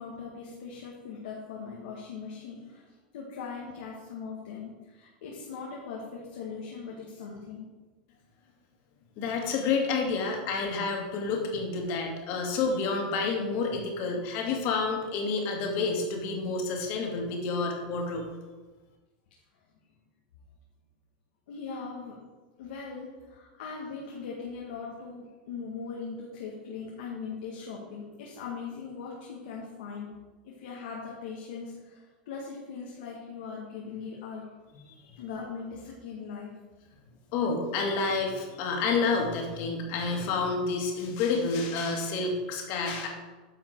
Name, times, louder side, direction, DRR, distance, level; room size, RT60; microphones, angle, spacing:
voice 1, 0.0-7.7 21.5-22.2 22.6-30.1 30.4-34.6 35.2-36.5, left 5 dB, 75° left, -2 dB, 1.8 m, -40 dB
voice 2, 9.2-18.2 35.1-35.2 37.3-43.1, left 4 dB, 55° left, 1 dB, 2.4 m, -29 dB
10.0 x 5.9 x 4.6 m, 1.2 s
hypercardioid pair, 110°, 5 cm